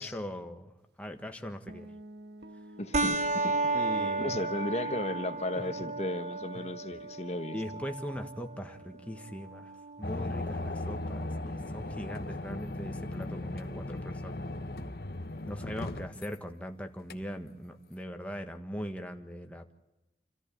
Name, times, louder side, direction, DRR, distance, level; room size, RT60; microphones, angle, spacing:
voice 1, 0.0-1.9 2.5-2.6 3.7-4.4 5.5-6.0 6.5-6.6 7.5-14.5 15.5-19.7, equal, 10° left, 5 dB, 1.5 m, -40 dB
Guitar, 1.7-8.2, right 1 dB, 75° right, 1.5 m, -48 dB
voice 2, 2.8-3.6 4.0-7.6, left 1 dB, 40° left, 8 dB, 1.2 m, -35 dB
sound 1, 2.9-11.9, right 3 dB, 40° right, 1.0 m, -35 dB
sound 2, 10.0-16.4 17.1-17.2, left 2 dB, 60° left, 1.1 m, -37 dB
29.0 x 14.0 x 8.6 m, 0.98 s
head